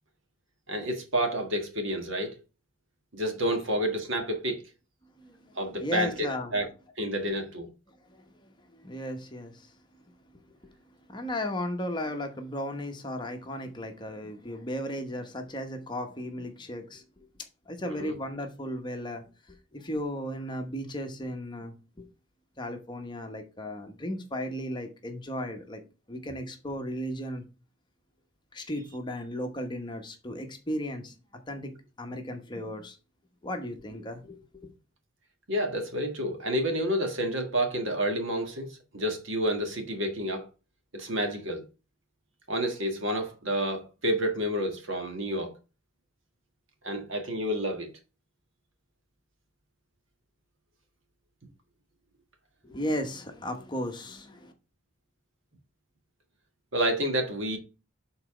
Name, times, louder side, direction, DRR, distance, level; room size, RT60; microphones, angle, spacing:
voice 1, 0.7-2.4 3.1-4.6 5.5-6.3 6.5-6.7 7.0-7.7 17.8-18.1 35.5-40.5 40.9-41.6 42.5-45.5 46.8-47.9 56.7-57.6, equal, 65° right, 1.7 m, -29 dB
voice 2, 5.2-6.5 8.1-9.7 11.1-17.0 17.7-22.1 22.6-25.8 26.1-27.4 28.5-31.1 31.5-31.7 32.0-33.0 33.4-34.7 52.6-54.5, equal, 20° left, 1.0 m, -35 dB
7.1 x 4.0 x 4.9 m
head